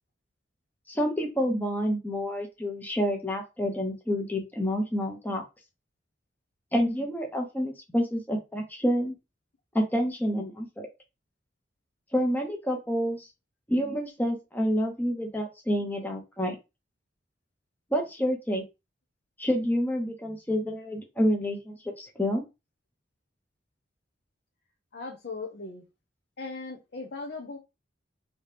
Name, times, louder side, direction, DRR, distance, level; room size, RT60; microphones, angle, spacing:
voice 1, 0.9-5.4 6.7-9.2 9.7-10.9 12.1-13.3 13.7-16.6 17.9-18.6 19.4-22.4, equal, 10° left, 2 dB, 0.8 m, -28 dB
voice 2, 24.9-25.8 26.4-27.6, left 3 dB, 55° left, 1 dB, 0.6 m, -38 dB
3.2 x 2.8 x 3.3 m, 0.25 s
head